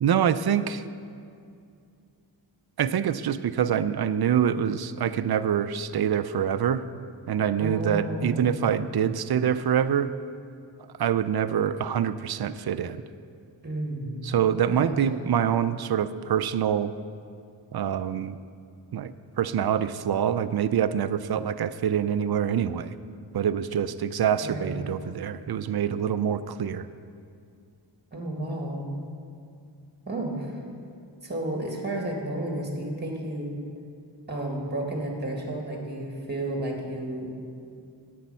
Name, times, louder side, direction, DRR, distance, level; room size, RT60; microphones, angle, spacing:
voice 1, 0.0-0.9 2.8-6.9 7.3-10.1 11.0-13.0 14.2-16.9 17.7-18.4 18.9-22.9 23.3-26.9, right 8 dB, 55° right, 13 dB, 0.5 m, -25 dB
voice 2, 7.6-8.6 13.6-14.2 14.7-15.2 24.4-24.8 28.1-28.9 30.1-30.6 31.2-33.5 34.3-37.3, right 1 dB, 20° right, 0 dB, 1.9 m, -32 dB
10.0 x 8.5 x 5.5 m, 2.4 s
wide cardioid pair, 90°, 45 cm